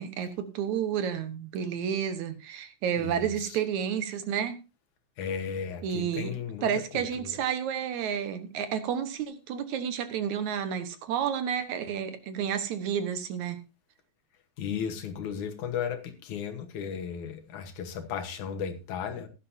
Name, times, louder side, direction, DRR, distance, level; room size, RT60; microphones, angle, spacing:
voice 1, 0.0-4.6 5.8-6.3 6.6-13.6, right 8 dB, 75° right, 2.6 m, -31 dB
voice 2, 3.0-3.6 5.2-6.7 6.9-7.3 14.6-19.3, left 7 dB, 80° left, 2.6 m, -35 dB
15.5 x 11.5 x 2.7 m
omnidirectional pair, 3.5 m